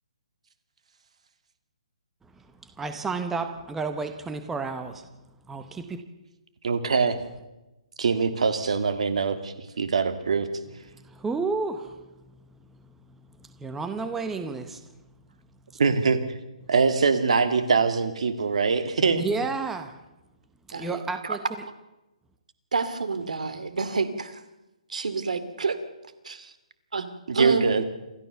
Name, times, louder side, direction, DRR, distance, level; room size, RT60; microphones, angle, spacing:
voice 1, 2.2-5.1 5.5-6.0 10.9-14.9 15.7-15.8 19.1-20.0 20.7-21.4, right 4 dB, 5° right, 0.8 m, -32 dB
voice 2, 6.6-7.2 8.0-10.5 15.8-16.2 16.7-19.2 27.3-27.8, right 5 dB, 65° right, 2.6 m, -23 dB
voice 3, 20.7-21.4 22.7-24.4 24.9-25.8 26.2-26.5 26.9-27.8, right 4 dB, 85° right, 2.4 m, -29 dB
27.5 x 13.5 x 6.9 m
hypercardioid pair, 170°, 4 cm